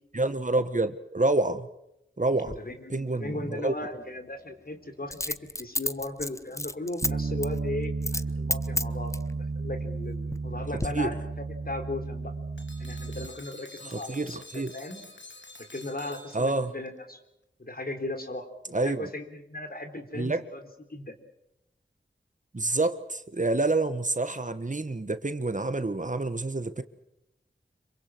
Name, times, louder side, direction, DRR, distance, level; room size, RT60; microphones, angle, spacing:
voice 1, 0.1-1.7 2.2-2.6 2.9-3.7 10.9-11.1 13.8-14.7 16.3-16.7 18.7-19.1 20.1-20.4 22.5-26.8, right 2 dB, 40° right, 11 dB, 1.5 m, -28 dB
voice 2, 2.4-12.3 12.8-15.1 15.7-17.2 17.6-21.2, left 2 dB, 50° left, 6 dB, 3.8 m, -37 dB
Coin (dropping), 2.4-2.6 5.1-7.1 7.4-7.6 8.0-8.3 8.5-9.3 9.9-10.5 10.8-10.9, left 1 dB, 15° left, 0.8 m, -31 dB
Bass guitar, 7.0-13.3, right 4 dB, 60° right, 1.2 m, -33 dB
sound 1, 12.6-16.9, left 2 dB, 70° left, 3.0 m, -48 dB
26.5 x 24.0 x 6.2 m, 0.84 s
wide cardioid pair, 50°, 19 cm